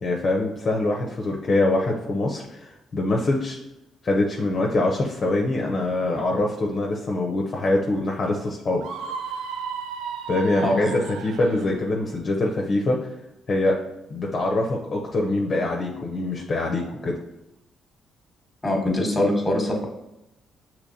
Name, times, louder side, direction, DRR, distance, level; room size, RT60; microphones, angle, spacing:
voice 1, 0.0-3.6 4.0-8.8 10.3-13.1 13.5-13.8 14.1-17.2, left 2 dB, 45° left, 0 dB, 0.6 m, -24 dB
Screaming, 8.8-11.8, right 6 dB, 90° right, 0.3 m, -34 dB
voice 2, 18.6-19.9, left 1 dB, 15° left, 1 dB, 1.2 m, -22 dB
6.2 x 2.9 x 2.7 m, 0.91 s
cardioid pair, 90°, 0 cm